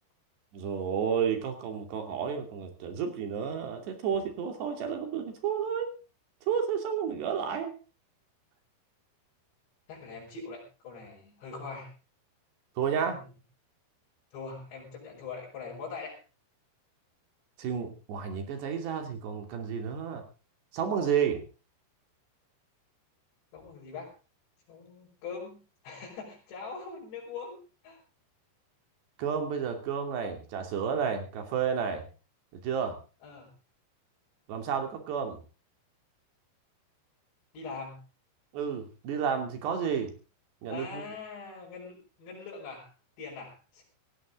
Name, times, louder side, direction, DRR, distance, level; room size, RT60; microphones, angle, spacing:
voice 1, 0.5-5.9 6.5-7.7 12.8-13.2 17.6-20.2 20.7-21.4 29.2-32.1 32.5-33.0 34.5-35.4 38.5-40.1 40.6-41.0, right 7 dB, 70° right, 5 dB, 4.8 m, -31 dB
voice 2, 9.9-11.9 13.0-13.3 14.3-16.2 23.5-24.1 24.7-27.6 27.8-28.0 33.2-33.5 37.5-38.0 40.7-42.9 43.2-43.8, left 4 dB, 75° left, -4 dB, 7.5 m, -42 dB
18.0 x 15.5 x 3.9 m, 0.35 s
omnidirectional pair, 5.0 m